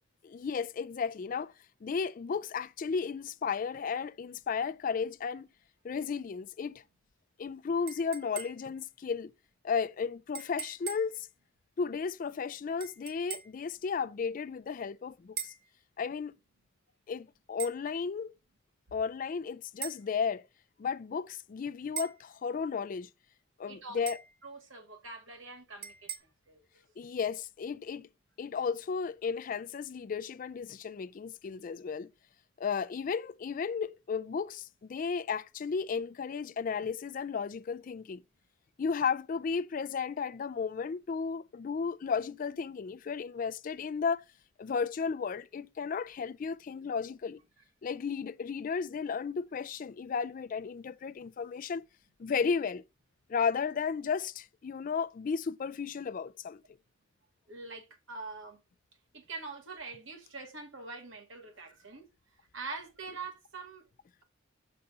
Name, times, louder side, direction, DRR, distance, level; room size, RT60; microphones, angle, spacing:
voice 1, 0.2-1.5 1.8-5.5 5.8-6.8 7.4-9.3 9.6-11.3 11.8-15.5 16.0-16.4 17.1-18.3 18.9-20.4 20.8-23.1 23.6-24.2 27.0-28.1 28.4-32.1 32.6-38.2 38.8-44.2 44.6-47.4 47.8-51.8 52.2-52.8 53.3-56.6, left 5 dB, 45° left, 0.3 m, -34 dB
sound 1, 7.9-8.8 10.3-11.2 12.8-13.6 15.4-15.7 17.6-17.8 19.8-20.1 22.0-22.3 24.1-24.4 25.8-26.2, right 9 dB, 50° right, 1.0 m, -41 dB
voice 2, 23.7-24.0 24.4-26.1 26.5-26.6 57.5-58.6 59.1-62.0 62.5-63.8, right 3 dB, 70° right, 2.0 m, -44 dB
6.5 x 4.1 x 5.4 m
head